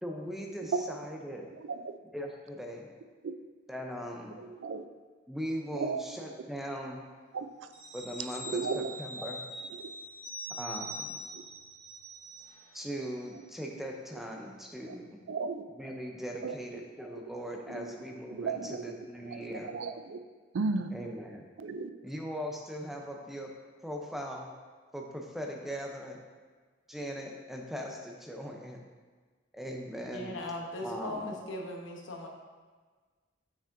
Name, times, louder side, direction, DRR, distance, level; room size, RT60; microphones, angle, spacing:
voice 1, 0.0-1.5 2.1-2.9 3.7-4.4 5.3-7.1 7.9-9.5 10.5-11.2 12.7-15.2 15.7-19.7 20.9-21.4 22.0-23.5 23.8-24.5 24.9-26.2 26.9-28.8 29.5-30.4 30.8-31.3, equal, ahead, 0 dB, 0.5 m, -39 dB
voice 2, 1.6-1.9 3.2-3.3 4.4-4.8 5.8-6.0 7.3-7.5 8.5-8.9 14.9-15.0 15.3-15.6 16.4-16.6 17.7-18.0 18.3-18.9 19.2-19.4 19.6-20.2 20.5-20.9 21.6-21.9, right 4 dB, 85° right, 10 dB, 0.4 m, -34 dB
sound 1, 7.7-12.8 13.2-13.3, equal, 35° right, 1.2 m, -43 dB
voice 3, 30.0-32.3, left 1 dB, 90° left, 1 dB, 0.9 m, -39 dB
7.1 x 5.8 x 2.6 m, 1.4 s
head